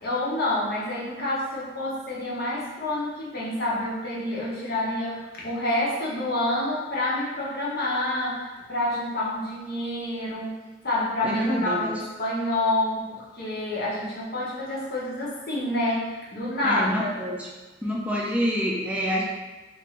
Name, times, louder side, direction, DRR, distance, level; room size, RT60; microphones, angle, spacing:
voice 1, 0.0-10.5 10.8-17.1, left 1 dB, 55° left, -6 dB, 0.8 m, -28 dB
voice 2, 11.2-11.9 16.6-17.5 17.8-19.2, equal, 10° right, -4 dB, 0.4 m, -27 dB
2.6 x 2.6 x 3.1 m, 1.2 s
head